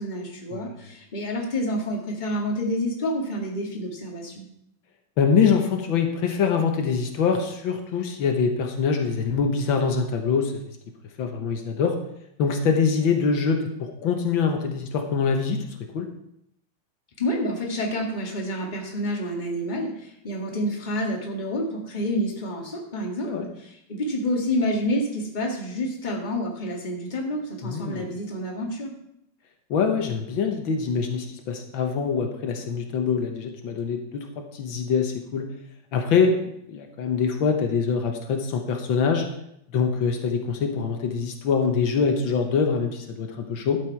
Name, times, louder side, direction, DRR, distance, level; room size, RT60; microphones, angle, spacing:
voice 1, 0.0-4.4 17.2-28.9, equal, 25° left, 0 dB, 1.7 m, -28 dB
voice 2, 5.2-10.5 11.2-12.0 12.4-15.6 15.9-16.1 23.3-23.5 27.6-28.1 29.7-35.5 35.9-36.3 36.7-39.3 39.7-43.8, left 5 dB, 80° left, 4 dB, 1.8 m, -24 dB
12.0 x 7.4 x 4.5 m, 0.78 s
omnidirectional pair, 2.2 m